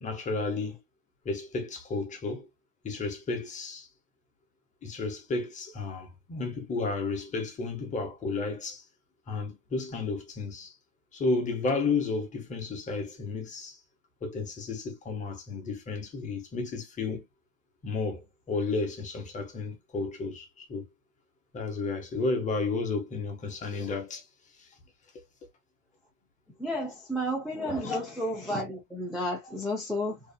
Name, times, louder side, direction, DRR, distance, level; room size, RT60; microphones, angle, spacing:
voice 1, 0.0-0.8 1.2-2.5 2.8-3.9 4.8-8.8 9.3-10.7 11.1-13.8 14.2-17.2 17.8-20.9 21.5-24.3 24.6-24.7 25.1-25.5 27.7-28.0, left 3 dB, 20° left, 0.8 m, -32 dB
voice 2, 26.6-30.2, equal, ahead, 0.4 m, -32 dB
2.7 x 2.4 x 2.3 m
supercardioid pair, 130°, 40 cm